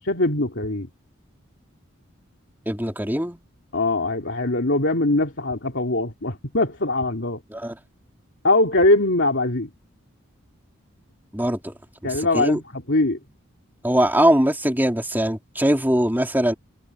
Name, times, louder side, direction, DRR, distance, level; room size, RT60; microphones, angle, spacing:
voice 1, 0.0-0.9 3.7-7.4 8.4-9.7 12.0-13.2, left 2 dB, 60° left, 2.7 m, -22 dB
voice 2, 2.6-3.4 7.5-7.8 11.3-11.7 12.0-12.6 13.8-16.5, right 1 dB, 10° right, 3.3 m, -21 dB
head